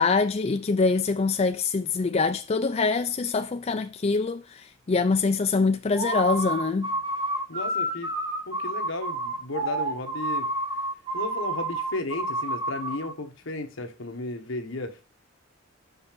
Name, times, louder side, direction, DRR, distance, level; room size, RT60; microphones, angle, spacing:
voice 1, 0.0-6.9, left 4 dB, 30° left, 0.4 m, -24 dB
sound 1, 5.9-13.1, right 1 dB, 25° right, 1.4 m, -30 dB
voice 2, 7.5-8.1 8.5-10.5 11.1-15.0, left 2 dB, 75° left, 1.3 m, -34 dB
5.7 x 5.5 x 5.9 m
head